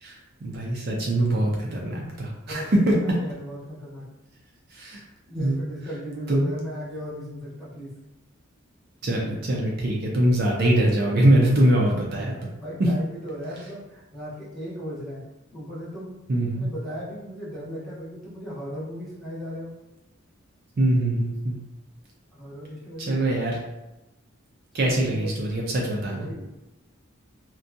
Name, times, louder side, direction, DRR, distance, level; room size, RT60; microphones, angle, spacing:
voice 1, 0.0-2.9 4.7-5.0 5.4-5.6 6.3-6.5 9.0-12.4 16.3-16.7 20.8-21.6 23.0-23.6 24.7-26.3, right 1 dB, 50° right, -2 dB, 0.4 m, -23 dB
voice 2, 2.4-4.1 5.3-7.9 12.6-15.2 15.5-16.2 16.5-19.7 22.3-23.2 24.8-25.3 26.1-26.5, equal, ahead, -9 dB, 0.7 m, -37 dB
2.6 x 2.2 x 2.5 m, 0.95 s
head